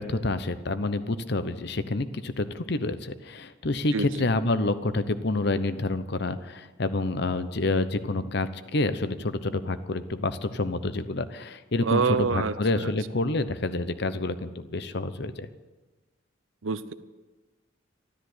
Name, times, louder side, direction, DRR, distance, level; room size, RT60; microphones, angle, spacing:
voice 1, 0.0-15.5, left 2 dB, 55° left, 12 dB, 0.8 m, -28 dB
voice 2, 3.9-4.3 11.8-12.9 16.6-16.9, right 5 dB, 85° right, 13 dB, 0.8 m, -27 dB
13.5 x 12.5 x 7.9 m, 1.2 s
head